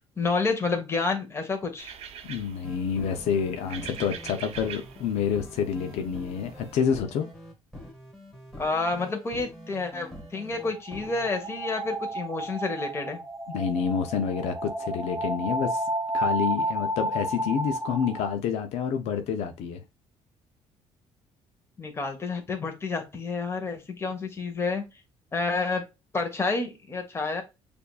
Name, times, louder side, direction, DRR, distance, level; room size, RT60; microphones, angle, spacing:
voice 1, 0.2-1.9 8.6-13.2 21.8-24.8 25.3-25.8 26.1-27.4, left 3 dB, 25° left, 1.2 m, -29 dB
sound 1, 1.8-6.8, right 8 dB, 65° right, 0.7 m, -44 dB
voice 2, 2.2-7.3 13.5-15.8 16.1-19.8, left 7 dB, 75° left, 0.7 m, -28 dB
sound 2, 2.6-11.5, left 1 dB, ahead, 1.7 m, -45 dB
sound 3, 10.6-18.3, right 1 dB, 20° right, 1.3 m, -31 dB
6.8 x 2.6 x 2.3 m
cardioid pair, 125°, 11 cm